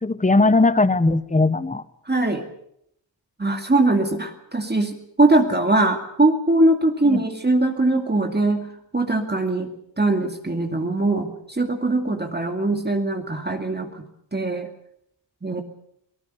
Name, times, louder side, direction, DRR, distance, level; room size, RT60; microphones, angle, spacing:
voice 1, 0.0-1.8 7.1-7.2, left 2 dB, 15° left, 15 dB, 1.0 m, -18 dB
voice 2, 2.1-2.4 3.4-8.7 8.9-9.7 10.0-14.0 14.3-14.7 15.4-15.6, right 2 dB, 20° right, 4 dB, 2.3 m, -21 dB
24.0 x 18.5 x 6.8 m, 0.73 s
wide cardioid pair, 85°, 45 cm